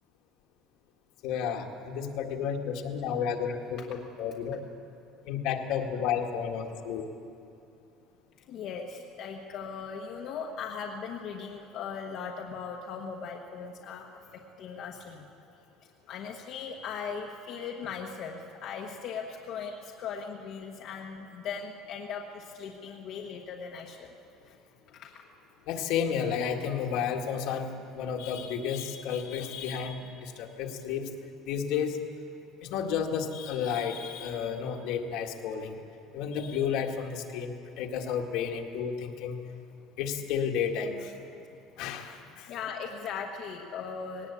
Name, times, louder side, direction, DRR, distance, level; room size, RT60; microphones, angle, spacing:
voice 1, 1.2-3.8 4.2-4.6 5.3-7.1 25.7-27.7 28.0-31.1 31.5-32.0 32.6-35.8 36.1-39.4 40.0-41.0 41.8-42.1, left 7 dB, 65° left, 3 dB, 1.8 m, -31 dB
voice 2, 8.4-14.1 14.3-15.3 16.1-24.1 24.5-24.6 24.9-25.2 42.3-44.3, left 6 dB, 50° left, -1 dB, 1.3 m, -39 dB
19.5 x 18.5 x 8.5 m, 2.7 s
cardioid pair, 160°, 0 cm